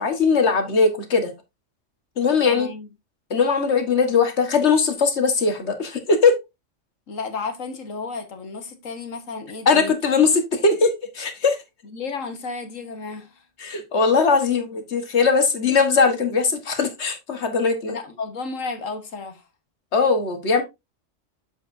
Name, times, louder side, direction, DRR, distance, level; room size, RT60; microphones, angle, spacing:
voice 1, 0.0-1.3 2.2-2.7 3.3-6.4 9.7-11.6 13.6-18.0 19.9-20.6, left 4 dB, 60° left, 1.8 m, -20 dB
voice 2, 2.4-2.9 7.1-9.9 11.8-13.4 17.8-19.5, left 4 dB, 85° left, 1.8 m, -33 dB
7.7 x 7.4 x 2.6 m
omnidirectional pair, 1.3 m